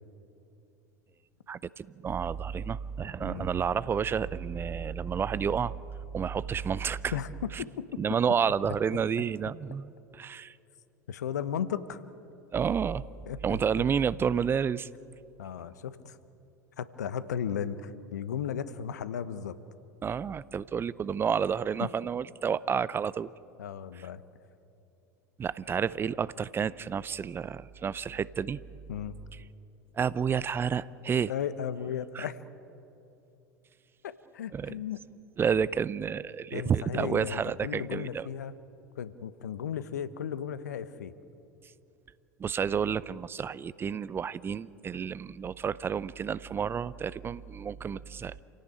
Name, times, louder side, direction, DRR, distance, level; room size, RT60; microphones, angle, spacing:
voice 1, 1.5-5.8 6.1-7.1 7.5-7.6 8.0-10.5 12.5-13.0 13.4-14.9 20.0-23.3 25.4-28.6 30.0-31.3 32.1-32.2 34.5-34.7 35.4-38.3 42.4-48.4, right 7 dB, 25° right, 19 dB, 0.6 m, -30 dB
voice 2, 3.2-3.5 7.1-7.3 7.6-8.1 11.1-12.0 13.3-13.6 15.4-16.2 16.8-19.6 21.8-21.9 23.6-24.2 28.9-29.2 31.3-32.4 34.0-35.0 36.5-38.5 38.9-41.1, left 8 dB, 70° left, 14 dB, 1.1 m, -35 dB
28.5 x 17.0 x 8.9 m, 2.8 s
figure-of-eight pair, 75°, 9 cm